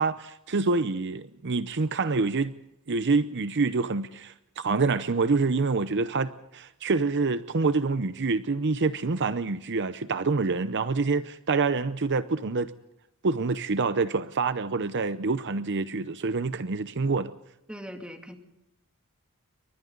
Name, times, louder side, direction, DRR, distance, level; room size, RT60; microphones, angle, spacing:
voice 1, 0.0-2.5 2.9-12.7 13.2-17.3, right 4 dB, 55° right, 0.7 m, -26 dB
voice 2, 17.7-18.4, equal, 5° right, 2.6 m, -40 dB
29.5 x 24.0 x 3.9 m
head